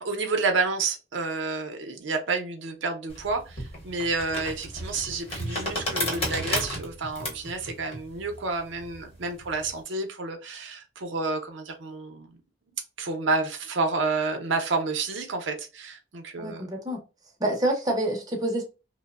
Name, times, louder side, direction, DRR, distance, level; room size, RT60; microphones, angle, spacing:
voice 1, 0.0-12.4 13.0-16.7, right 3 dB, 70° right, 0.6 m, -30 dB
sound 1, 3.1-9.8, equal, 30° left, 0.9 m, -33 dB
voice 2, 16.4-17.0 17.4-18.6, right 1 dB, 20° right, 0.6 m, -27 dB
2.9 x 2.0 x 2.3 m
head